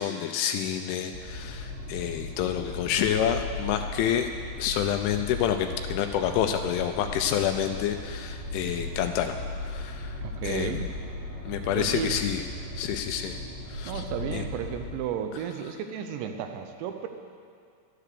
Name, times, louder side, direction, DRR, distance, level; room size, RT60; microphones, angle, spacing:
voice 1, 0.0-4.3 4.6-10.2 10.4-10.9 11.5-12.4 12.8-13.4 13.7-14.0 14.3-14.4, left 9 dB, 85° left, 6 dB, 2.8 m, -28 dB
sound 1, 1.1-14.9, left 2 dB, 60° right, 2.9 m, -37 dB
voice 2, 10.2-10.9 11.8-12.2 13.9-17.1, right 8 dB, 80° right, 7 dB, 2.7 m, -33 dB
11.5 x 11.0 x 6.7 m, 2.2 s
omnidirectional pair, 5.7 m